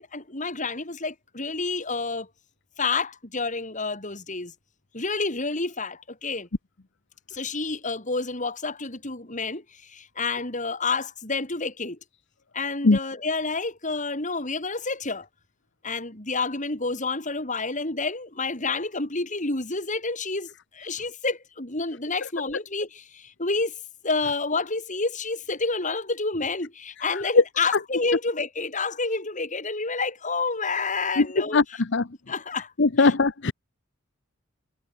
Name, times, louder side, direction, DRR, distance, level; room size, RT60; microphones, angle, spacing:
voice 1, 0.0-2.3 2.8-4.5 4.9-6.5 7.3-12.0 12.5-15.3 15.8-23.8 24.0-31.8 32.3-32.7 33.0-33.1, left 3 dB, 35° left, 3.8 m, -29 dB
voice 2, 32.8-33.5, left 3 dB, 55° left, 0.9 m, -19 dB
head